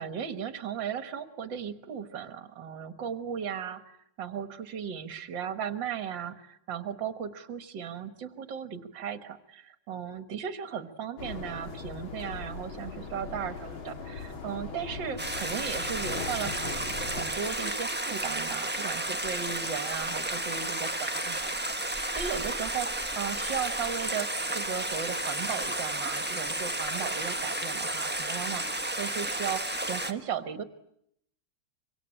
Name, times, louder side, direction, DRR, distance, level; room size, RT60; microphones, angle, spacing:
voice 1, 0.0-3.8 4.2-30.6, right 7 dB, 60° right, 10 dB, 2.1 m, -36 dB
sound 1, 11.2-17.2, left 4 dB, 65° left, 3.3 m, -40 dB
Stream, 15.2-30.1, right 1 dB, 10° right, 0.7 m, -32 dB
25.0 x 24.5 x 8.8 m, 0.75 s
omnidirectional pair, 2.4 m